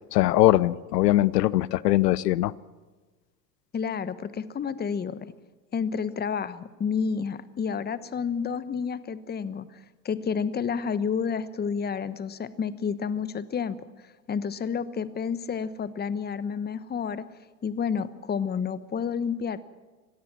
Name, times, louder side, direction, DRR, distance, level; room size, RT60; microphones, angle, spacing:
voice 1, 0.1-2.5, left 16 dB, 70° left, 22 dB, 0.8 m, -21 dB
voice 2, 3.7-5.3 5.7-13.8 14.3-17.2 17.6-19.6, left 6 dB, 20° left, 15 dB, 1.1 m, -30 dB
25.5 x 17.5 x 6.1 m, 1.3 s
hypercardioid pair, 85°, 50 cm